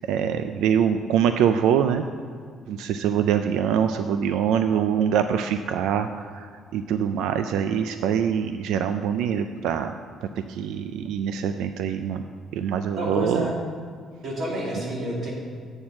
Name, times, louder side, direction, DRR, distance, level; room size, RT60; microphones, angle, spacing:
voice 1, 0.1-2.0 2.7-9.9 10.3-12.2 12.5-13.5, right 8 dB, 90° right, 8 dB, 0.3 m, -24 dB
voice 2, 12.9-13.6 14.2-15.3, right 1 dB, 40° right, -4 dB, 2.4 m, -28 dB
8.6 x 4.5 x 7.4 m, 2.1 s
cardioid pair, 155°, 0 cm